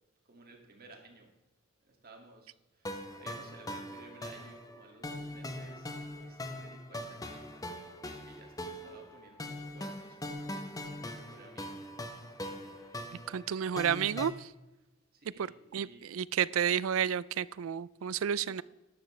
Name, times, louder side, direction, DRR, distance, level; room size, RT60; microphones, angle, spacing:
voice 1, 0.3-1.3 1.8-7.5 8.2-10.5 10.9-11.8 12.4-13.3 15.1-16.1 18.5-18.6, right 2 dB, 50° right, 2 dB, 2.2 m, -56 dB
sound 1, 2.9-14.3, left 1 dB, 20° left, 0.9 m, -42 dB
voice 2, 13.3-14.5 15.4-15.5 15.7-18.6, right 8 dB, 80° right, 20 dB, 0.4 m, -31 dB
13.0 x 11.5 x 3.3 m, 1.0 s
head